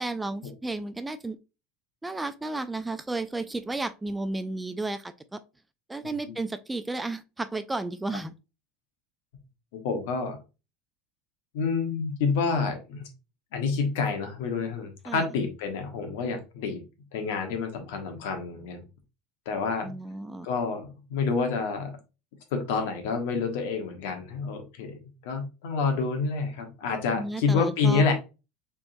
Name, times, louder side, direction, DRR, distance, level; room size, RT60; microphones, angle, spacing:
voice 1, 0.0-1.4 2.0-5.4 5.9-8.3 15.1-15.3 19.8-20.5 27.2-28.1, right 2 dB, 10° right, 0.3 m, -33 dB
voice 2, 6.0-6.3 9.7-10.4 11.5-13.1 13.5-16.8 17.1-18.8 19.4-19.9 20.4-22.0 22.5-28.1, left 4 dB, 80° left, 1.2 m, -28 dB
3.9 x 3.5 x 2.6 m
supercardioid pair, 130°, 0 cm